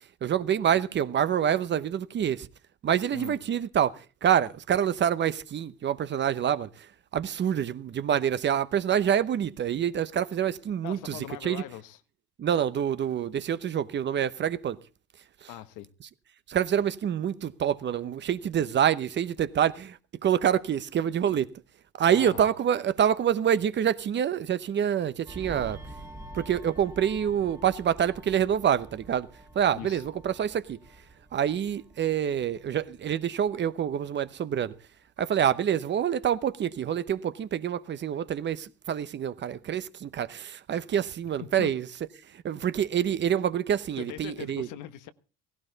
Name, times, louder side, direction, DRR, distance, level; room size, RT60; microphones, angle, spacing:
voice 1, 0.0-2.5 2.8-11.6 12.4-14.8 15.4-15.5 16.5-21.5 22.0-25.8 26.3-29.3 29.5-30.8 31.3-34.7 35.2-41.9 42.3-44.7, right 9 dB, 35° right, 0.9 m, -27 dB
voice 2, 10.8-12.0 15.5-15.9 22.1-22.5 29.7-30.0 41.4-41.8 44.0-45.1, left 13 dB, 70° left, 1.3 m, -41 dB
sound 1, 25.3-34.3 34.6-34.9, right 2 dB, 10° right, 1.8 m, -47 dB
16.5 x 16.0 x 4.0 m
cardioid pair, 130°, 31 cm